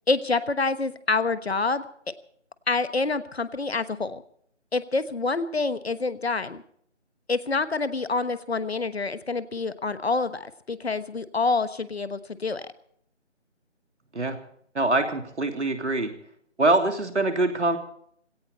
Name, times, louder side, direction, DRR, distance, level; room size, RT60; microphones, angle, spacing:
voice 1, 0.1-1.8 2.7-4.2 4.7-6.6 7.3-12.7, left 3 dB, 60° left, 13 dB, 1.2 m, -27 dB
voice 2, 14.7-16.1 16.6-17.8, right 2 dB, 70° right, 6 dB, 3.0 m, -24 dB
19.0 x 17.0 x 4.2 m, 0.64 s
figure-of-eight pair, 170°, 36 cm